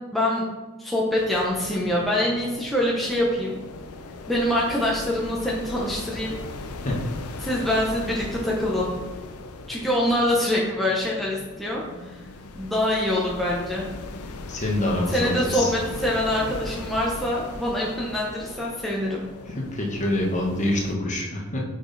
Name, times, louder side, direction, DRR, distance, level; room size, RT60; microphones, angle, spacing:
voice 1, 0.1-0.5 0.8-3.6 4.3-6.4 7.4-8.9 9.7-12.1 12.6-13.8 15.1-19.3, left 1 dB, ahead, -5 dB, 0.8 m, -25 dB
sound 1, 1.2-21.0, left 2 dB, 80° left, 0.6 m, -39 dB
voice 2, 14.5-15.7 19.5-21.6, left 1 dB, 35° left, -1 dB, 1.2 m, -26 dB
6.2 x 5.0 x 4.0 m, 1.2 s
head